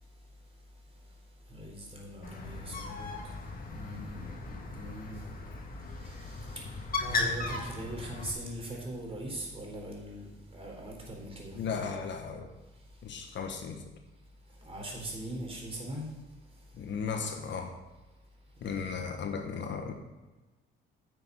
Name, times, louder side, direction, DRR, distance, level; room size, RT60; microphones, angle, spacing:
voice 1, 1.5-3.1 3.7-5.1 6.0-6.6 7.1-10.3 10.5-11.6 14.6-16.1 18.7-19.0, right 1 dB, 30° right, -1 dB, 3.9 m, -41 dB
Bird, 2.2-8.3, left 3 dB, 45° left, 1.7 m, -37 dB
voice 2, 11.5-12.5 13.0-13.8 16.7-17.7 18.6-19.9, left 6 dB, 65° left, 5 dB, 1.4 m, -35 dB
9.4 x 7.0 x 5.5 m, 1.2 s
cardioid pair, 90°, 20 cm